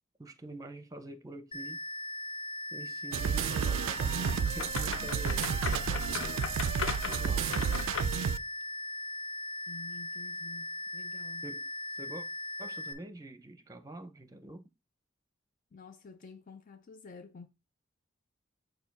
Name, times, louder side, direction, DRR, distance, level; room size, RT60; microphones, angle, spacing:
voice 1, 0.2-1.8 2.7-6.5 7.0-7.6 11.4-11.7 11.9-12.3 12.6-14.7, right 1 dB, 20° right, 0.6 m, -46 dB
sound 1, 1.5-12.9, left 1 dB, 25° left, 0.8 m, -39 dB
sound 2, 3.1-8.4, right 7 dB, 75° right, 0.3 m, -31 dB
sound 3, 4.2-8.3, left 5 dB, 85° left, 0.7 m, -38 dB
voice 2, 9.7-11.5 15.7-17.5, left 4 dB, 45° left, 0.4 m, -50 dB
6.7 x 2.7 x 5.3 m
head